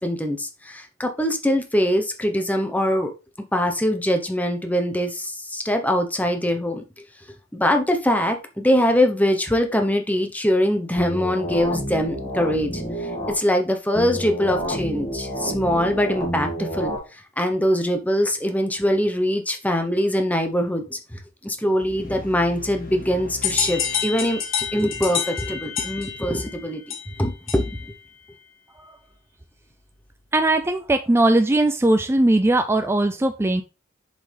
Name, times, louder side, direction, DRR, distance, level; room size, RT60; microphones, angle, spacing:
voice 1, 0.0-3.1 3.4-6.8 7.5-16.9 17.4-24.4 24.7-26.8 27.2-27.7, equal, 10° left, 5 dB, 1.0 m, -23 dB
sound 1, 11.0-13.3 13.9-17.0, equal, 25° left, 2.4 m, -29 dB
sound 2, 21.8-24.8, left 4 dB, 45° left, 1.4 m, -40 dB
sound 3, 23.4-27.9, left 8 dB, 85° left, 1.7 m, -28 dB
voice 2, 30.3-33.6, right 2 dB, 15° right, 7 dB, 0.4 m, -19 dB
6.8 x 5.4 x 3.4 m, 0.30 s
head